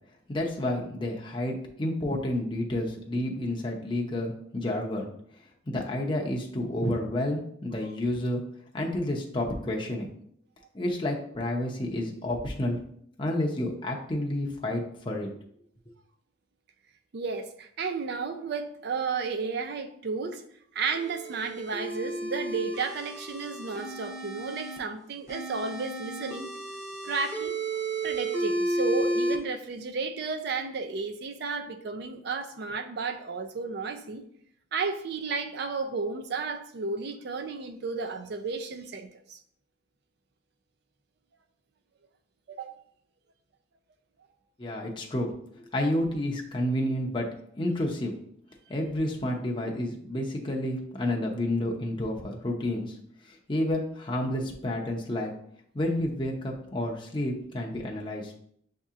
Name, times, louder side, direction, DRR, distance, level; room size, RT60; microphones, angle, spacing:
voice 1, 0.3-5.1 5.7-8.4 8.7-10.1 10.7-12.8 13.2-15.3 44.6-47.3 47.6-48.1 48.7-52.9 53.3-55.3 55.7-58.3, left 1 dB, 25° left, 0.5 m, -30 dB
voice 2, 17.1-20.4 20.7-26.5 27.0-27.6 28.0-34.2 34.7-39.4 42.5-42.8, right 4 dB, 55° right, 0.4 m, -33 dB
sound 1, 20.8-24.8 25.3-29.4, right 1 dB, 15° right, 0.8 m, -32 dB
7.4 x 2.8 x 2.4 m
head